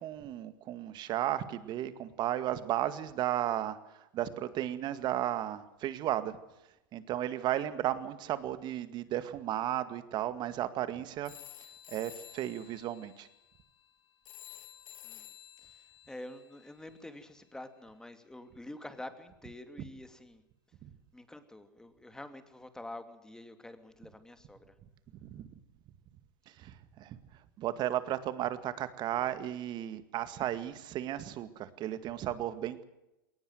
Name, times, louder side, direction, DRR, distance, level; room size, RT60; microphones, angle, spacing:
voice 1, 0.0-6.4 6.9-11.3 11.9-13.3 20.8-20.9 25.2-25.5 26.5-27.2 27.6-32.8, right 12 dB, 45° right, 12 dB, 2.0 m, -34 dB
sound 1, 11.2-17.4, left 12 dB, 50° left, 3.2 m, -53 dB
voice 2, 15.6-20.4 21.1-24.7, left 1 dB, 5° left, 9 dB, 2.6 m, -47 dB
21.0 x 19.0 x 7.8 m, 0.91 s
hypercardioid pair, 100°, 11 cm